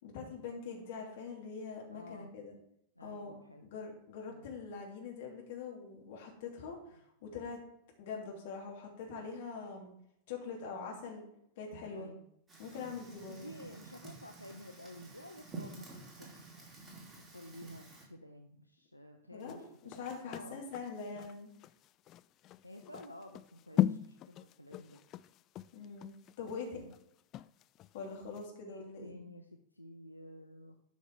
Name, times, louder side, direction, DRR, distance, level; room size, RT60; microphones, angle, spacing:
voice 1, 0.0-2.6 3.0-3.3 3.6-7.6 8.0-9.9 10.3-11.3 11.6-12.1 12.6-13.4 19.3-21.5 25.7-26.8 27.9-29.2, left 5 dB, 55° left, 0 dB, 3.0 m, -44 dB
voice 2, 1.9-2.3 3.0-3.7 4.3-4.5 11.9-12.3 13.3-16.5 17.1-20.6 22.6-25.0 26.5-27.0 28.7-30.8, left 1 dB, 85° left, 4 dB, 0.7 m, -52 dB
Fire, 12.5-18.0, right 3 dB, 20° right, 3.2 m, -50 dB
sound 1, 19.4-28.0 28.3-28.5, left 12 dB, 35° left, 0.3 m, -38 dB
12.5 x 6.3 x 3.7 m, 0.76 s
figure-of-eight pair, 90°, 0 cm